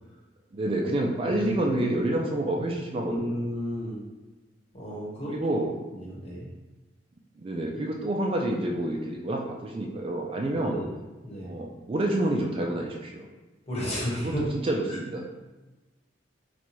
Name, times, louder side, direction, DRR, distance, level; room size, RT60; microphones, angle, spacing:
voice 1, 0.5-3.3 5.3-5.7 7.4-10.8 11.4-13.3 14.2-14.3 14.6-15.4, right 1 dB, 30° right, 0 dB, 0.3 m, -28 dB
voice 2, 1.2-1.7 3.1-4.0 4.7-5.3 5.9-6.5 10.5-10.9 11.2-11.6 13.7-14.4 14.9-15.0, left 1 dB, 35° left, -6 dB, 1.1 m, -33 dB
4.1 x 2.2 x 3.0 m, 1.1 s
head